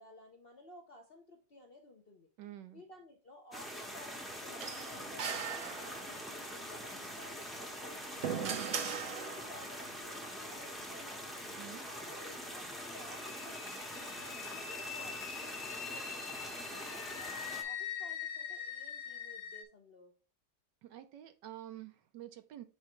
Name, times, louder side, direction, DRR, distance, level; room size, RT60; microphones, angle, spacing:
voice 1, 0.0-2.3 2.7-8.6 9.0-11.4 11.9-17.3 17.6-20.1, left 1 dB, 45° left, 3 dB, 0.9 m, -55 dB
voice 2, 2.4-2.8 11.6-11.9 20.8-22.6, right 12 dB, 75° right, 10 dB, 1.3 m, -48 dB
sound 1, 3.5-17.6, equal, ahead, 0.7 m, -44 dB
sound 2, 4.6-6.3 7.7-9.7, right 7 dB, 55° right, 0.9 m, -39 dB
sound 3, 12.5-19.6, left 8 dB, 80° left, 1.9 m, -43 dB
7.4 x 4.8 x 3.1 m, 0.33 s
omnidirectional pair, 2.0 m